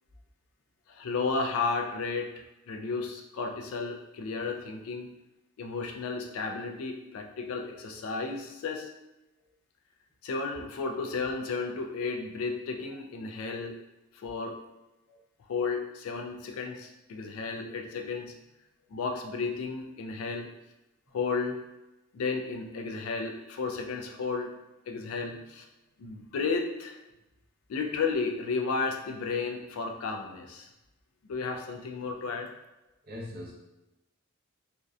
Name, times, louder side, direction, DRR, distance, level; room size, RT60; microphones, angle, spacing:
voice 1, 0.9-2.3 2.7-5.1 5.6-8.9 10.2-13.8 14.1-14.6 15.5-18.3 18.9-20.5 21.1-21.6 22.1-24.6 24.9-25.7 26.0-27.0 27.7-30.7 31.3-32.5, left 4 dB, 75° left, 4 dB, 0.3 m, -33 dB
voice 2, 33.0-33.5, left 1 dB, 45° right, -2 dB, 0.6 m, -41 dB
2.5 x 2.1 x 2.3 m, 0.98 s
head